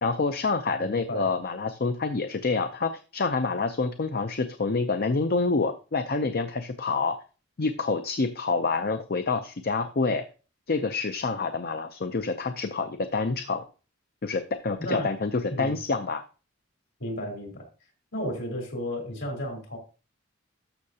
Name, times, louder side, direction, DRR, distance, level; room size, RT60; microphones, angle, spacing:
voice 1, 0.0-7.2 7.6-10.2 10.7-13.7 14.2-16.2, left 4 dB, 50° left, 8 dB, 0.6 m, -27 dB
voice 2, 0.8-1.3 14.8-15.1 15.5-15.7 17.0-17.7 18.1-19.8, equal, 65° left, 2 dB, 3.8 m, -33 dB
13.0 x 6.4 x 2.8 m, 0.34 s
head